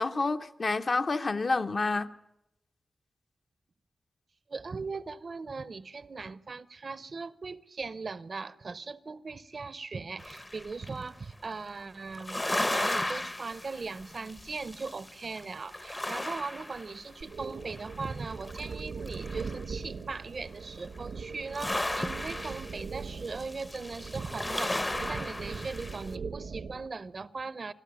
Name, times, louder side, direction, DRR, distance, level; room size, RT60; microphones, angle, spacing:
voice 1, 0.0-2.1, left 3 dB, 45° left, 0.9 m, -28 dB
voice 2, 4.5-27.7, right 4 dB, 45° right, 0.7 m, -39 dB
sound 1, 10.2-11.0 12.1-15.4 15.7-17.3 17.6-19.7 20.8-21.0 21.4-26.1, left 1 dB, 20° left, 0.8 m, -35 dB
sound 2, 17.2-26.9, right 5 dB, 90° right, 1.3 m, -41 dB
26.5 x 13.0 x 10.0 m
wide cardioid pair, 135°, 0 cm